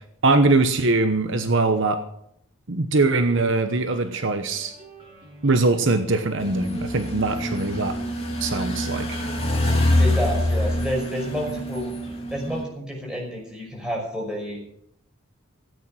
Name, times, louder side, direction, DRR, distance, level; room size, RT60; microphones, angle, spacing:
voice 1, 0.2-2.0 2.7-4.7 5.4-8.0 8.4-9.3, right 3 dB, 55° right, 8 dB, 1.0 m, -22 dB
sound 1, 3.3-12.2, left 1 dB, 25° right, 6.9 m, -46 dB
sound 2, 6.4-12.6, left 1 dB, 25° left, 2.7 m, -25 dB
voice 2, 10.0-11.9 12.3-14.6, equal, 5° right, -2 dB, 5.8 m, -29 dB
16.5 x 8.7 x 7.8 m, 0.72 s
head